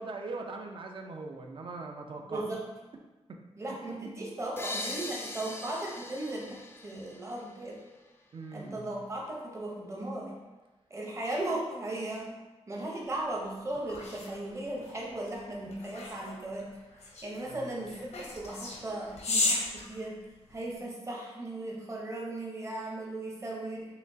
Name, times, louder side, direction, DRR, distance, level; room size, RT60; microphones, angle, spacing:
voice 1, 0.0-2.4 3.3-3.4 3.7-4.0 8.3-9.0 17.5-17.9, right 3 dB, 50° right, 3 dB, 0.5 m, -41 dB
voice 2, 2.2-2.6 3.6-7.8 8.5-10.3 10.9-12.3 12.7-16.7 17.2-20.2 20.5-23.9, right 1 dB, 25° right, -3 dB, 0.8 m, -37 dB
sound 1, 4.6-8.1, left 2 dB, 20° left, 0.4 m, -41 dB
sound 2, 13.2-20.7, left 2 dB, 85° left, 0.8 m, -36 dB
5.7 x 3.1 x 2.7 m, 1.2 s
wide cardioid pair, 160°, 11 cm